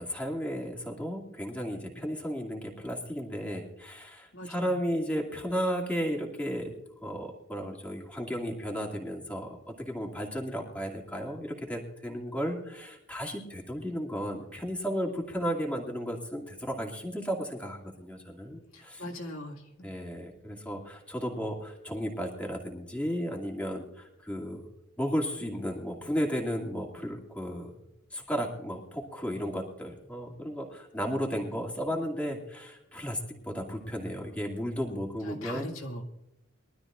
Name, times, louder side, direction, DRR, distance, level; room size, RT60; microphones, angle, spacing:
voice 1, 0.0-6.8 7.0-19.0 19.8-24.6 25.0-27.7 28.1-35.7, equal, 5° left, -1 dB, 2.5 m, -34 dB
voice 2, 4.3-4.8 12.6-12.7 18.7-19.9 35.2-36.0, left 1 dB, 80° left, 0 dB, 2.0 m, -41 dB
23.0 x 12.5 x 2.5 m, 0.90 s
head